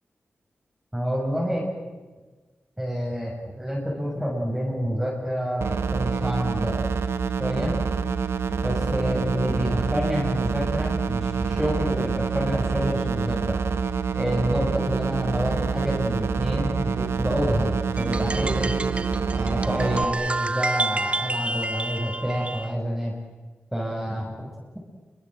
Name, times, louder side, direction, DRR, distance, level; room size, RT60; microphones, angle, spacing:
voice 1, 0.9-1.6 2.8-7.0 7.4-7.7 8.6-13.6 14.1-18.7 19.3-23.1 23.7-24.4, equal, 5° right, -3 dB, 6.7 m, -28 dB
sound 1, 5.6-20.0, right 5 dB, 90° right, 1.4 m, -27 dB
sound 2, 18.0-22.7, right 2 dB, 30° right, 1.1 m, -29 dB
28.5 x 25.0 x 7.8 m, 1.3 s
wide cardioid pair, 85°, 4 cm